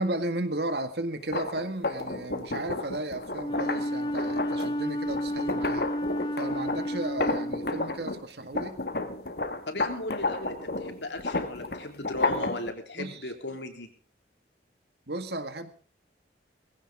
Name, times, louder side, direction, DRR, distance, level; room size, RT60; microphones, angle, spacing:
voice 1, 0.0-5.9 6.4-8.8 12.9-13.3 15.1-15.7, right 1 dB, 65° right, 10 dB, 1.9 m, -34 dB
sound 1, 1.2-8.2 8.5-12.7, left 2 dB, 60° left, 1.7 m, -32 dB
Wind instrument woodwind instrument, 3.4-8.1, equal, 25° left, 1.3 m, -32 dB
voice 2, 9.7-13.9, left 2 dB, 80° left, 5 dB, 3.3 m, -37 dB
19.5 x 16.0 x 3.6 m, 0.43 s
head